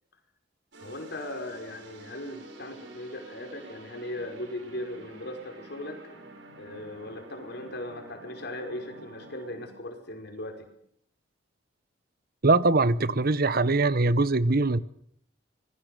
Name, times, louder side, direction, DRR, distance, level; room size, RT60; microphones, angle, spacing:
sound 1, 0.7-9.9, right 2 dB, 70° right, 5.7 m, -49 dB
voice 1, 0.8-6.0 6.6-10.7, left 1 dB, 60° left, 5.4 m, -38 dB
voice 2, 12.4-14.8, right 3 dB, 55° right, 1.0 m, -22 dB
25.5 x 21.5 x 6.8 m
head